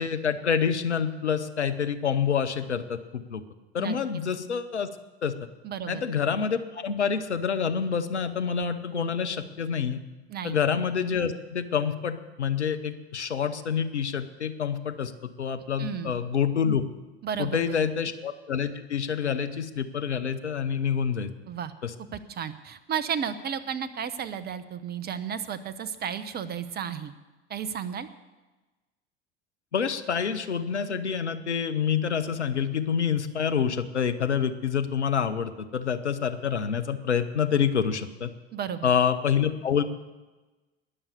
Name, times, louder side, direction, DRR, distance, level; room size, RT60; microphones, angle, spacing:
voice 1, 0.0-3.4 3.7-4.9 5.2-5.3 5.9-10.0 10.4-15.1 15.4-16.8 17.4-21.3 21.8-21.9 29.7-38.3 38.8-39.8, left 7 dB, 80° left, 10 dB, 0.9 m, -27 dB
voice 2, 5.6-6.0 10.3-10.6 15.8-16.2 17.2-17.9 21.5-21.7 22.1-27.1 27.5-28.1 38.5-38.9, right 8 dB, 30° right, 14 dB, 0.9 m, -33 dB
20.0 x 7.2 x 6.9 m, 1.2 s
figure-of-eight pair, 75°, 34 cm